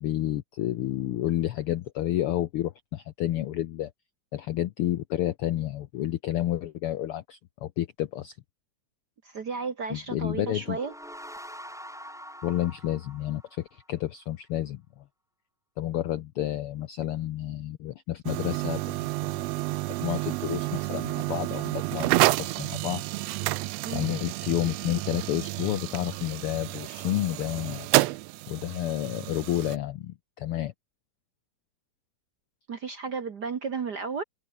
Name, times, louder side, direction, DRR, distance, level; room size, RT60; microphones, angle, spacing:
voice 1, 0.0-3.9 4.3-8.4 9.9-10.8 12.4-15.0 15.8-19.5 20.0-23.0 23.9-27.9 28.5-30.7, left 13 dB, 80° left, 1.2 m, -30 dB
voice 2, 9.2-10.9 23.8-24.1 32.7-34.2, right 5 dB, 50° right, 1.3 m, -33 dB
sound 1, 10.5-14.0, equal, ahead, 6.3 m, -45 dB
sound 2, 18.3-29.8, right 19 dB, 80° right, 1.5 m, -29 dB
omnidirectional pair, 3.5 m